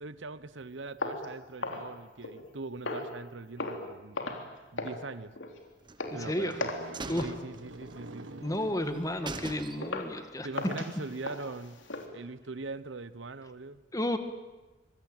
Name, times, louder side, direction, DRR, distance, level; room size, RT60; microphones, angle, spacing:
voice 1, 0.0-4.2 4.7-5.4 6.1-6.7 7.2-8.4 10.4-11.8 12.1-13.8, right 3 dB, 75° right, 15 dB, 1.0 m, -41 dB
sound 1, 1.0-2.5 2.8-3.2 3.6-3.9 4.1-4.5 4.8-5.0 5.3-5.6 6.0-6.2 6.6-6.9 7.2-7.4 7.8-8.0 8.5-8.6 9.1-9.2 9.8-10.1 10.5-12.1, left 2 dB, 75° left, 3.4 m, -37 dB
sound 2, 5.9-6.5 6.9-8.2 8.5-8.6 8.9-9.0 9.3-10.2 10.5-10.6, right 3 dB, 25° right, 1.2 m, -41 dB
voice 2, 6.1-6.6 7.1-7.3 8.4-10.5 13.9-14.2, left 1 dB, 20° left, 8 dB, 1.8 m, -32 dB
sound 3, 6.2-10.2, right 2 dB, 90° right, 1.8 m, -48 dB
25.5 x 22.0 x 9.1 m, 1.1 s
head